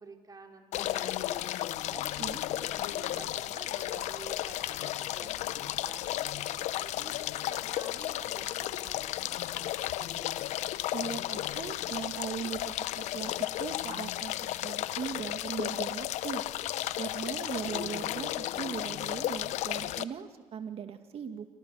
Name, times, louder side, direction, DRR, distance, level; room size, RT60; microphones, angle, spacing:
voice 1, 0.0-10.7, right 4 dB, 30° right, 2 dB, 4.5 m, -51 dB
sound 1, 0.7-20.0, left 14 dB, 70° left, 0.8 m, -34 dB
voice 2, 10.9-13.3 13.6-16.4 17.0-21.5, right 7 dB, 55° right, 6 dB, 2.4 m, -39 dB
29.5 x 26.0 x 6.6 m, 1.3 s
supercardioid pair, 65°, 12 cm